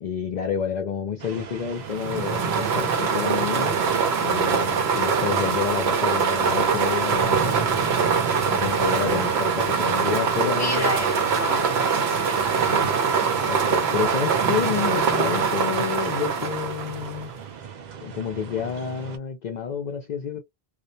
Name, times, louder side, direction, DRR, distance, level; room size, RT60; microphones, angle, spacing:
voice 1, 0.0-3.8 4.2-7.6 8.4-10.9 12.7-12.9 13.2-17.3 18.0-20.4, left 7 dB, 55° left, 0.5 m, -29 dB
sound 1, 1.2-19.2, right 7 dB, 55° right, 0.5 m, -39 dB
sound 2, 1.9-17.3, right 6 dB, 85° right, 1.0 m, -23 dB
voice 2, 10.4-12.8, left 3 dB, 20° left, 0.7 m, -32 dB
2.4 x 2.0 x 2.6 m
omnidirectional pair, 1.0 m